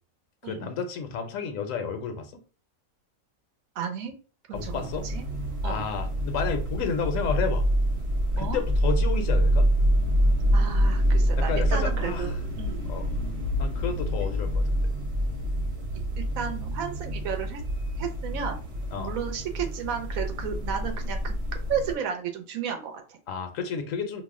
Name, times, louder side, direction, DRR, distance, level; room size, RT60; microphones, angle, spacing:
voice 1, 0.4-2.3 4.5-5.1 5.6-7.6 8.4-9.7 11.4-12.3 12.8-13.1 13.6-14.6 18.9-19.1 23.3-24.2, left 6 dB, 75° left, 6 dB, 0.9 m, -31 dB
voice 2, 3.8-4.1 4.5-5.3 5.6-5.8 8.4-8.6 10.5-12.9 16.2-17.6 18.0-18.6 19.0-21.3 21.7-23.2, right 7 dB, 80° right, 5 dB, 1.0 m, -33 dB
sound 1, 4.5-21.9, equal, 60° right, 1.1 m, -26 dB
2.6 x 2.0 x 3.5 m, 0.36 s
omnidirectional pair, 1.4 m